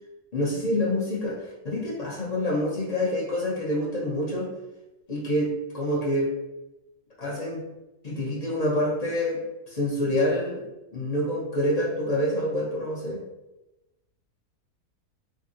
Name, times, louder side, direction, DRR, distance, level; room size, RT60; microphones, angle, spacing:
voice 1, 0.3-4.5 5.1-6.3 7.2-7.6 8.0-10.6 10.9-13.2, left 1 dB, 45° left, -5 dB, 0.5 m, -27 dB
3.4 x 2.5 x 2.6 m, 0.97 s
omnidirectional pair, 1.7 m